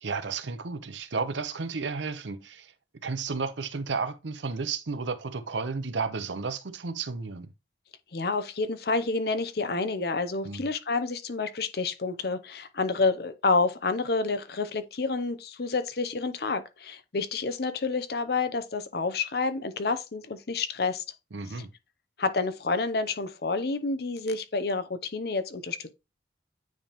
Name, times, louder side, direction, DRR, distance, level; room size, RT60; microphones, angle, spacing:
voice 1, 0.0-2.7 3.0-7.5 10.4-10.6 21.3-21.7, right 4 dB, 85° right, 0.7 m, -32 dB
voice 2, 8.1-21.0 22.2-25.9, left 3 dB, 60° left, 0.7 m, -29 dB
9.3 x 3.5 x 3.0 m
head